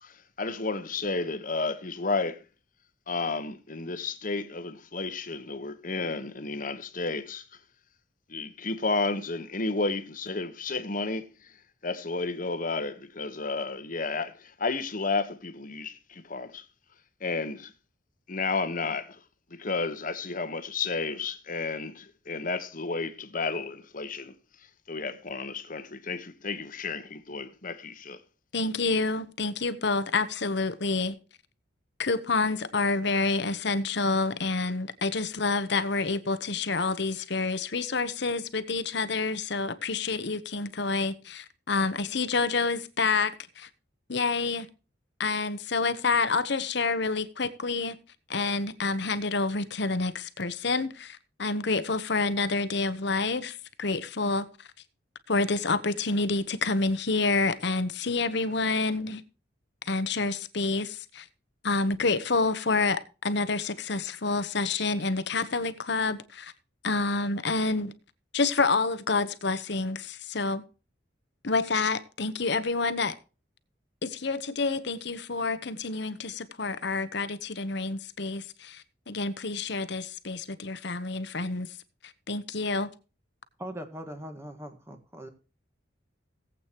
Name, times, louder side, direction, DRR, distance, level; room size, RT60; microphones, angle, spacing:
voice 1, 0.0-2.4 3.1-7.4 8.3-11.3 11.8-16.6 17.2-17.7 18.3-19.2 19.6-24.3 24.9-28.2, left 3 dB, 45° left, 1.2 m, -32 dB
voice 2, 28.5-31.2 32.0-43.7 44.1-44.7 45.2-48.0 48.3-54.5 55.3-59.2 59.8-61.2 61.6-66.5 66.8-67.9 68.3-70.6 71.4-73.1 74.0-81.7 82.3-82.9, left 3 dB, 60° left, 1.0 m, -28 dB
voice 3, 83.6-85.3, equal, 15° right, 1.7 m, -40 dB
18.0 x 8.4 x 3.0 m
head